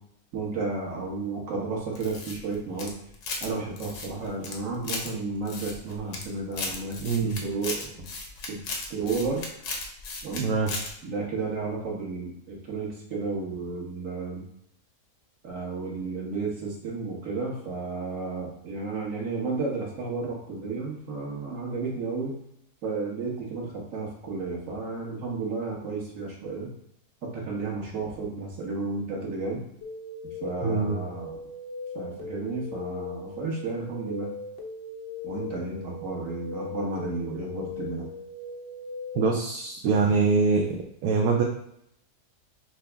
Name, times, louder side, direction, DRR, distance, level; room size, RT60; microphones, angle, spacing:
voice 1, 0.3-2.9 3.4-7.9 8.5-8.6 8.9-9.4 10.2-10.5 11.0-14.4 15.4-22.4 22.8-26.7 27.2-29.6 30.4-31.4 31.9-34.3 35.2-38.0, right 3 dB, 55° right, -2 dB, 1.4 m, -32 dB
sound 1, 1.9-3.5 3.8-5.1 5.5-6.2 6.5-10.4 10.7-10.9, left 3 dB, 80° left, 1.3 m, -35 dB
voice 2, 7.0-7.4 10.4-10.9 30.6-31.0 39.1-41.4, right 4 dB, 70° right, 0 dB, 0.9 m, -24 dB
sound 2, 29.8-39.4, left 3 dB, 55° left, 0.6 m, -39 dB
5.9 x 2.0 x 3.3 m, 0.73 s
omnidirectional pair, 1.7 m